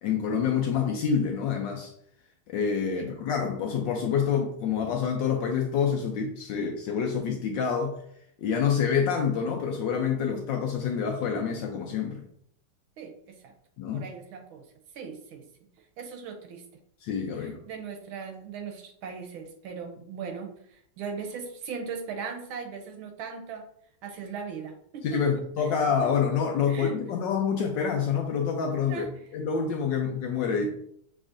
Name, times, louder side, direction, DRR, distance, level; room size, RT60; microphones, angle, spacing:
voice 1, 0.0-1.9 2.5-8.0 8.4-12.2 13.8-14.0 17.0-17.6 25.0-29.1 29.3-30.7, left 6 dB, 75° left, 2 dB, 1.1 m, -27 dB
voice 2, 13.0-13.5 13.9-14.7 14.9-15.5 15.8-16.6 17.3-23.7 24.0-25.9 26.7-27.0 28.9-29.3, right 6 dB, 75° right, 3 dB, 1.5 m, -39 dB
6.2 x 3.1 x 2.5 m, 0.68 s
omnidirectional pair, 2.4 m